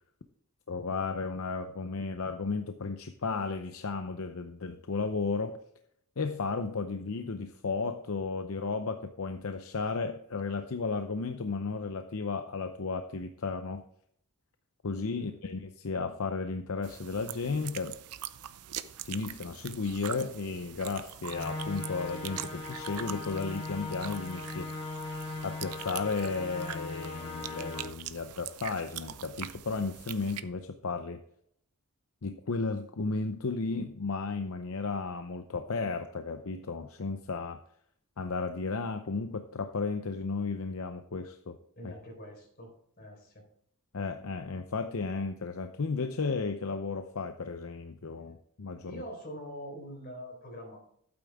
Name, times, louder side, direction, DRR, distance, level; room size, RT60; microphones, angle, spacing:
voice 1, 0.7-5.6 6.2-13.8 14.8-17.9 19.0-24.7 25.4-31.2 32.2-37.6 38.2-41.6 41.8-41.9 43.9-49.0, left 4 dB, 70° left, 8 dB, 0.7 m, -34 dB
sound 1, 16.8-30.4, right 11 dB, 85° right, 0.6 m, -43 dB
sound 2, 21.2-27.8, left 2 dB, 25° left, 3.7 m, -39 dB
voice 2, 41.8-42.7 43.0-43.4 48.9-50.8, equal, 45° left, 0 dB, 4.3 m, -44 dB
12.0 x 8.8 x 3.5 m, 0.67 s
head